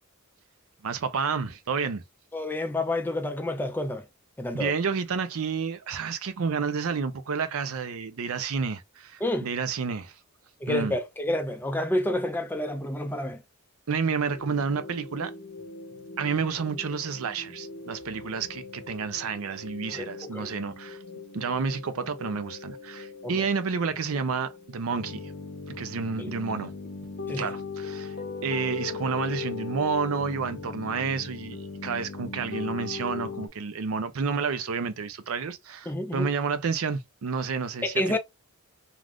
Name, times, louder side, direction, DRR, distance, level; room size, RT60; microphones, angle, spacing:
voice 1, 0.8-2.0 4.5-10.2 10.7-10.9 13.9-15.3 16.2-21.0 21.3-25.2 25.8-26.7 27.3-28.1 28.4-38.2, right 5 dB, 65° right, 0.5 m, -30 dB
voice 2, 2.3-4.0 4.4-4.7 9.2-9.5 10.6-13.4 19.9-20.5 23.2-23.5 26.2-26.3 27.3-27.5 35.9-36.3 37.8-38.2, left 1 dB, 10° left, 0.3 m, -29 dB
sound 1, 14.2-33.5, left 4 dB, 45° left, 0.6 m, -39 dB
2.5 x 2.4 x 3.3 m
head